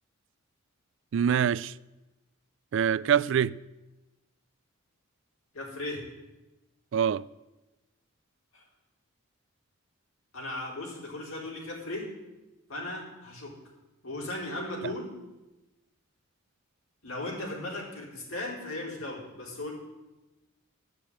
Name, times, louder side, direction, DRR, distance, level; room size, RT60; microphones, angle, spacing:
voice 1, 1.1-1.7 2.7-3.6 6.9-7.3, right 8 dB, 60° right, 0.3 m, -24 dB
voice 2, 5.5-6.1 8.5-8.6 10.3-12.1 12.7-13.5 14.0-15.1 17.0-19.7, left 1 dB, 85° left, 4.3 m, -37 dB
12.5 x 6.7 x 8.7 m
head